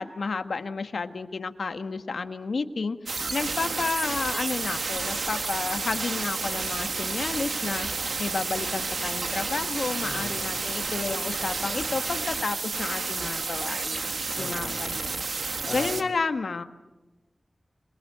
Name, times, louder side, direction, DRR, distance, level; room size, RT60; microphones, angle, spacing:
voice 1, 0.0-7.9 8.2-15.3 15.7-16.6, left 4 dB, 80° left, 8 dB, 1.5 m, -31 dB
sound 1, 3.1-16.0, right 4 dB, 75° right, 1.5 m, -31 dB
voice 2, 10.0-10.5 14.3-15.0 15.4-16.0, left 3 dB, 65° left, -5 dB, 4.1 m, -39 dB
27.0 x 22.0 x 9.4 m, 1.1 s
wide cardioid pair, 90°, 0 cm